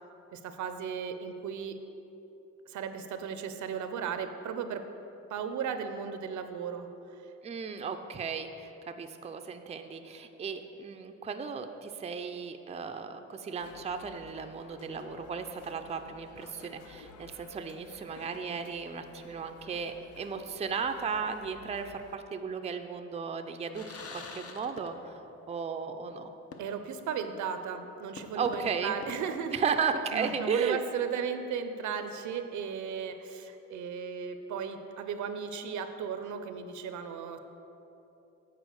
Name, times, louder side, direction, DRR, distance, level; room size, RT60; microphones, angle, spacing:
voice 1, 0.3-1.8 2.7-4.8 5.3-6.9 26.6-29.5 30.1-37.4, right 7 dB, 75° right, 9 dB, 0.6 m, -36 dB
voice 2, 7.4-26.3 28.4-29.0 29.5-30.8, right 6 dB, 20° right, 7 dB, 0.4 m, -35 dB
sound 1, 13.6-22.2, left 6 dB, 85° left, 0.6 m, -53 dB
sound 2, 23.7-25.3 25.6-25.7 26.5-27.0 27.4-27.5 28.2-30.1, left 4 dB, 50° left, 0.8 m, -47 dB
8.3 x 4.3 x 6.3 m, 3.0 s
cardioid pair, 90°, 30 cm